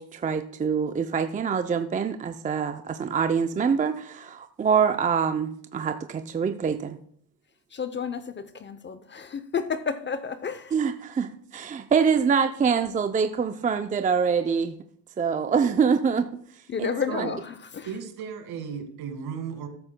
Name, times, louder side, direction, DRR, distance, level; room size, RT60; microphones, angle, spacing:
voice 1, 0.0-7.0 10.7-14.8 15.2-16.3 16.8-17.3, right 6 dB, 20° right, 0.5 m, -25 dB
voice 2, 7.7-10.7 16.7-17.9, left 6 dB, 30° left, 0.6 m, -31 dB
voice 3, 17.8-19.7, right 7 dB, 65° right, 1.8 m, -35 dB
13.0 x 9.7 x 2.2 m
supercardioid pair, 100°, 40 cm